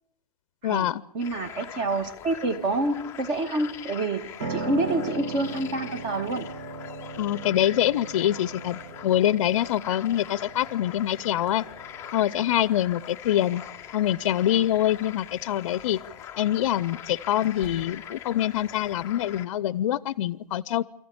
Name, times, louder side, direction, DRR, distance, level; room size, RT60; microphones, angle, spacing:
voice 1, 0.6-1.0 7.2-11.6 12.1-13.6 13.9-16.0 16.4-20.8, left 12 dB, 50° left, 0.7 m, -25 dB
voice 2, 1.1-6.5, right 2 dB, 25° right, 2.0 m, -27 dB
sound 1, 1.2-19.5, left 10 dB, 15° left, 0.8 m, -42 dB
Piano, 4.4-14.3, right 3 dB, 45° right, 2.0 m, -39 dB
sound 2, 15.2-15.3 17.4-18.4, right 2 dB, 60° right, 4.1 m, -45 dB
26.5 x 14.5 x 8.8 m
hypercardioid pair, 155°, 20 cm